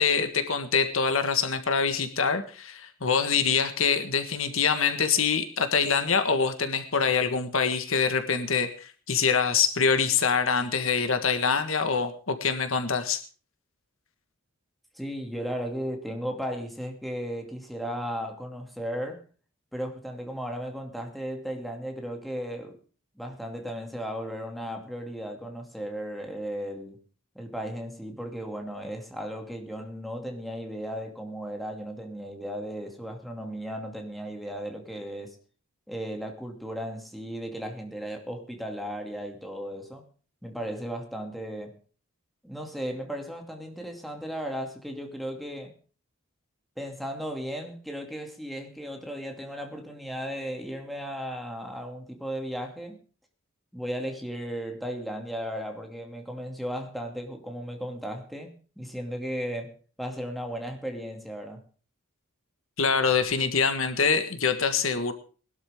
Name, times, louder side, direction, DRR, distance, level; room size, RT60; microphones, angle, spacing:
voice 1, 0.0-13.2 62.8-65.1, left 5 dB, 65° left, 1.5 m, -25 dB
voice 2, 14.9-19.2 19.7-22.8 23.1-27.0 27.3-35.4 35.9-40.1 40.4-41.8 42.4-45.7 46.8-53.0 53.7-61.6, equal, ahead, 2.5 m, -35 dB
21.0 x 12.5 x 3.7 m
head